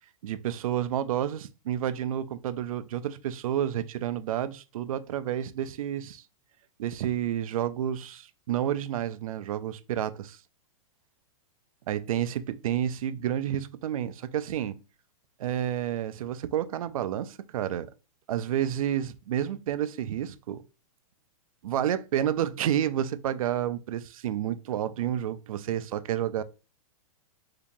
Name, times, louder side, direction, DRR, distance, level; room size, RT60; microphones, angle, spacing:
voice 1, 0.2-6.2 6.8-10.4 11.9-14.8 15.4-17.9 18.3-20.6 21.6-26.4, right 10 dB, 75° right, 0.4 m, -30 dB
2.9 x 2.8 x 3.6 m
supercardioid pair, 170°, 18 cm